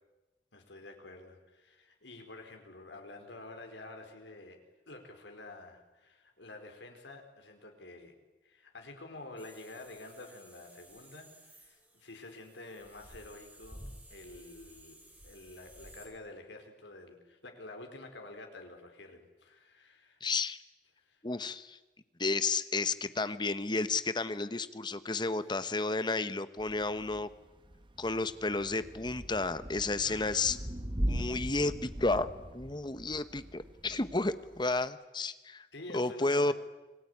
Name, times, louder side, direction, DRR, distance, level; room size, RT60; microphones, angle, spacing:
voice 1, 0.5-4.6 4.9-8.1 8.4-13.8 14.1-15.0 15.2-20.2 21.0-21.2 25.1-25.3 30.0-30.6 35.7-36.5, left 2 dB, 90° left, 4 dB, 4.8 m, -49 dB
sound 1, 9.4-16.1, right 1 dB, 10° right, 4.4 m, -54 dB
voice 2, 20.2-20.6 21.2-21.8 22.2-27.3 28.0-30.6 31.0-35.7 35.9-36.5, left 3 dB, 25° left, 13 dB, 1.0 m, -32 dB
Thunder / Rain, 26.6-34.9, equal, 30° right, 1.4 m, -40 dB
26.5 x 20.0 x 9.7 m, 1.1 s
head